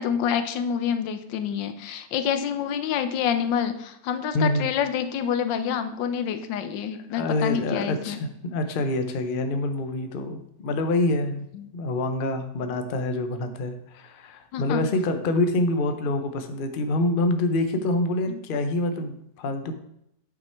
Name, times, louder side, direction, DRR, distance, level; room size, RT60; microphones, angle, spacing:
voice 1, 0.0-8.2 11.5-11.7 14.5-14.9 18.3-18.4, left 8 dB, 85° left, 9 dB, 1.4 m, -27 dB
voice 2, 4.3-4.7 7.1-11.5 11.7-19.7, left 2 dB, 45° left, 7 dB, 0.7 m, -26 dB
8.6 x 6.4 x 4.5 m, 0.77 s
omnidirectional pair, 1.9 m